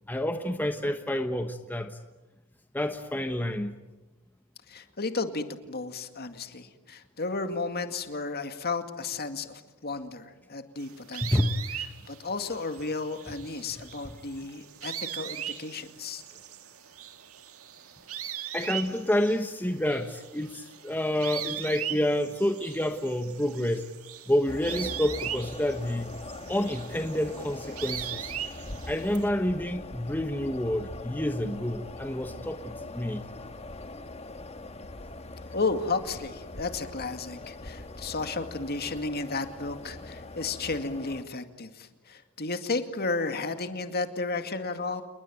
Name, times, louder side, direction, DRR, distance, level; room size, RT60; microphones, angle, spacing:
voice 1, 0.1-2.0 2.7-3.7 11.2-11.6 14.1-14.2 18.5-23.8 24.3-26.1 26.5-28.3 28.9-33.2, left 1 dB, 10° left, 6 dB, 1.2 m, -28 dB
voice 2, 4.7-11.4 12.1-16.2 35.5-45.0, left 3 dB, 45° left, 7 dB, 2.2 m, -33 dB
sound 1, 10.8-29.3, right 10 dB, 75° right, 1.9 m, -40 dB
sound 2, 24.5-41.2, left 2 dB, 30° left, 1.5 m, -42 dB
29.0 x 21.0 x 9.3 m, 1.1 s
head